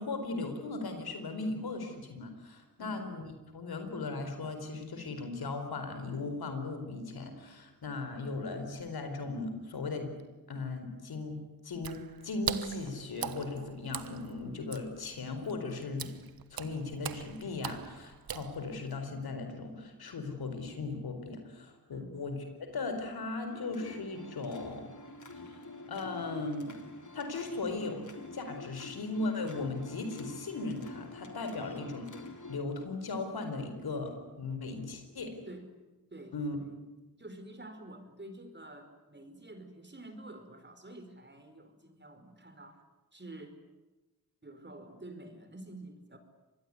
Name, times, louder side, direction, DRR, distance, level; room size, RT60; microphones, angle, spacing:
voice 1, 0.0-3.2 3.5-10.1 10.5-16.1 16.5-24.9 25.4-25.6 25.9-26.8 27.1-28.1 28.3-32.1 32.5-35.4 36.3-36.6, left 3 dB, 85° left, 7 dB, 4.4 m, -37 dB
voice 2, 2.8-3.1 21.9-22.3 35.5-35.7 36.1-36.4 37.2-42.8 43.1-43.6 44.4-46.2, right 1 dB, 30° right, 7 dB, 5.1 m, -48 dB
Water / Splash splatter, 11.7-19.0, right 8 dB, 75° right, 1.2 m, -41 dB
sound 1, 23.5-32.6, left 3 dB, 55° left, 3.6 m, -47 dB
25.5 x 21.0 x 9.7 m, 1.1 s
cardioid pair, 55°, 36 cm